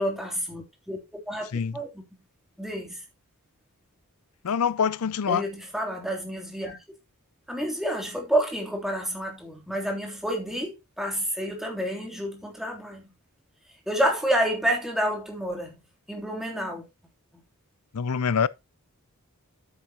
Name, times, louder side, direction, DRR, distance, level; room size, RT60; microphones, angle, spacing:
voice 1, 0.0-1.9 2.6-3.0 5.3-6.8 7.5-13.1 13.9-15.7 16.1-16.8, equal, ahead, 3.2 m, -29 dB
voice 2, 4.4-5.5 17.9-18.5, left 6 dB, 80° left, 0.5 m, -25 dB
10.0 x 9.0 x 3.0 m
head